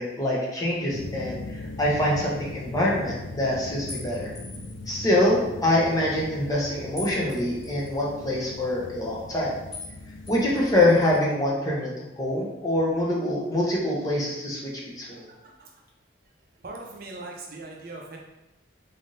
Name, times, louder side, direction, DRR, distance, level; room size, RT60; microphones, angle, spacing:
voice 1, 0.0-4.3 4.9-9.6 10.3-14.6 15.0-15.3, left 1 dB, 20° left, -5 dB, 0.8 m, -25 dB
sound 1, 0.9-11.2, left 2 dB, 75° left, 0.4 m, -39 dB
sound 2, 3.9-4.9 7.0-8.0 9.7-10.0 10.3-11.2, left 3 dB, 5° right, 1.4 m, -42 dB
voice 2, 15.1-15.7 16.6-18.2, right 2 dB, 45° right, 0 dB, 0.5 m, -41 dB
3.7 x 3.5 x 2.7 m, 0.96 s
head